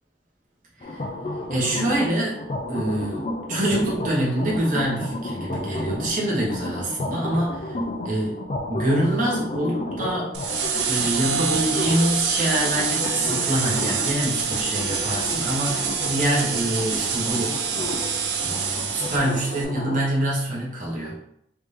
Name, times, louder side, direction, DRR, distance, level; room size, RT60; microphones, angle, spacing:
sound 1, 0.8-20.0, left 1 dB, 40° left, 0.4 m, -33 dB
voice 1, 1.5-2.4 2.7-7.8 8.0-8.4 8.7-10.3 10.9-18.0 18.4-21.2, right 1 dB, 45° right, -5 dB, 1.1 m, -25 dB
sound 2, 10.3-19.6, right 6 dB, 75° right, 0.5 m, -26 dB
3.4 x 2.7 x 3.2 m, 0.77 s
head